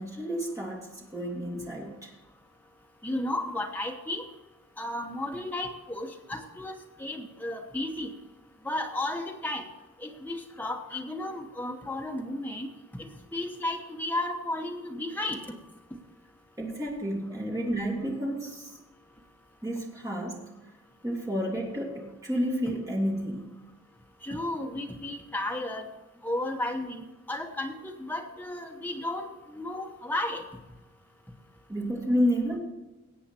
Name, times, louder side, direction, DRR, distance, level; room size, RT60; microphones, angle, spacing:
voice 1, 0.0-2.1 16.6-18.7 19.6-20.5 21.0-23.6 31.7-32.6, equal, 15° right, -2 dB, 2.5 m, -30 dB
voice 2, 3.0-4.2 4.8-8.1 8.6-9.6 10.0-12.7 12.9-15.6 24.2-25.9 26.2-30.4, left 1 dB, 10° left, 2 dB, 1.1 m, -33 dB
17.5 x 8.1 x 4.4 m, 1.1 s
head